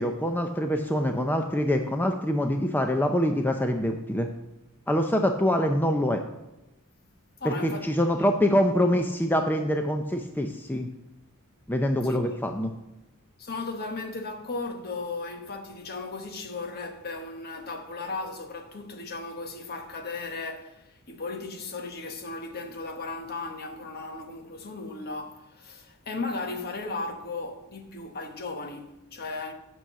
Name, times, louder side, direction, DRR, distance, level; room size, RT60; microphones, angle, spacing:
voice 1, 0.0-4.3 4.9-6.2 7.4-10.9 11.7-12.7, equal, 10° left, 0.5 m, -25 dB
voice 2, 7.4-7.9 12.0-12.4 13.4-29.5, left 3 dB, 45° left, 1.1 m, -36 dB
8.9 x 6.2 x 6.8 m
head